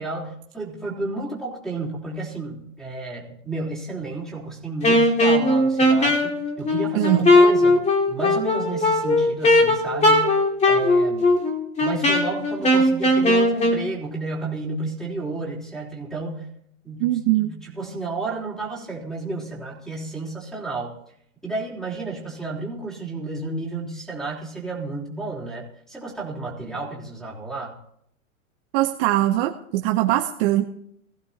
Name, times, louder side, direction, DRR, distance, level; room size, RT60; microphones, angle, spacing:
voice 1, 0.0-7.8 8.1-10.3 10.7-11.3 11.8-16.5 16.8-20.9 21.4-27.7, right 3 dB, ahead, -2 dB, 3.6 m, -32 dB
Wind instrument woodwind instrument, 4.8-13.8, left 1 dB, 15° left, 2.2 m, -18 dB
voice 2, 6.9-7.3 17.0-17.5 28.7-30.6, right 15 dB, 45° right, 4 dB, 0.9 m, -21 dB
18.5 x 15.5 x 2.9 m, 0.72 s
hypercardioid pair, 130°, 40 cm